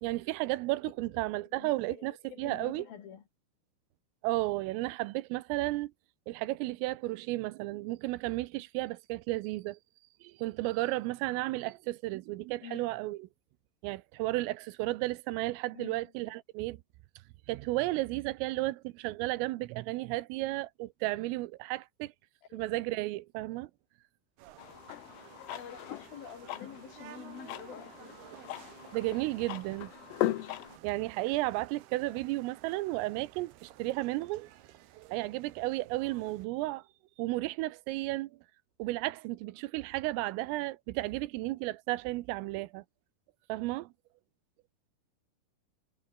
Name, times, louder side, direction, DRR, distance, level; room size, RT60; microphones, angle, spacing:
voice 1, 0.0-2.1 2.4-2.9 4.2-5.9 6.3-9.8 10.2-13.3 13.8-16.8 17.5-22.1 22.5-23.7 28.9-29.9 30.8-34.5 35.0-36.8 37.2-38.3 38.8-42.8 43.5-43.9, right 19 dB, 85° right, 3.5 m, -33 dB
voice 2, 1.2-3.2 12.6-12.9 15.7-16.0 22.5-22.8 25.5-28.2 32.0-32.2, left 8 dB, 55° left, 3.6 m, -48 dB
sound 1, 24.4-36.5, right 14 dB, 65° right, 2.8 m, -54 dB
sound 2, 24.6-30.8, left 15 dB, 90° left, 4.1 m, -39 dB
omnidirectional pair, 5.8 m